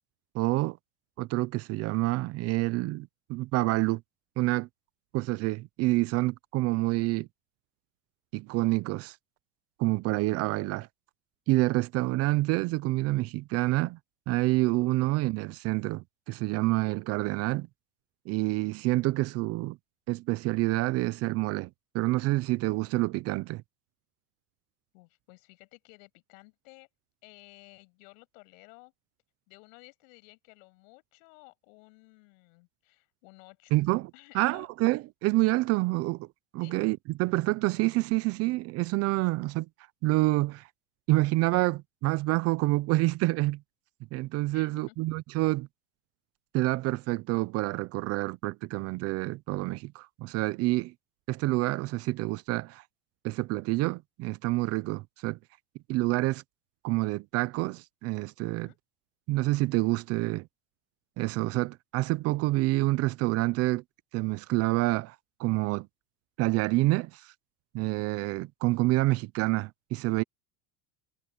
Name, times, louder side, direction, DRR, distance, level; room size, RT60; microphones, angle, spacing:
voice 1, 0.3-0.8 1.2-4.0 4.4-4.7 5.1-7.3 8.3-9.2 9.8-10.9 11.5-14.0 14.3-17.7 18.3-19.8 20.1-21.7 21.9-23.6 33.7-36.3 36.5-39.7 40.0-40.7 41.1-43.6 44.1-45.7 46.5-50.9 51.3-52.8 53.2-55.4 55.9-56.4 56.8-58.7 59.3-60.5 61.2-63.8 64.1-65.9 66.4-67.3 67.7-70.2, right 20 dB, 40° right, 0.4 m, -27 dB
voice 2, 24.9-26.9 27.2-28.9 29.5-33.8 34.1-34.7 36.6-36.8 44.5-45.2 58.6-58.8, left 29 dB, 80° left, 6.6 m, -55 dB
cardioid pair, 160°, 39 cm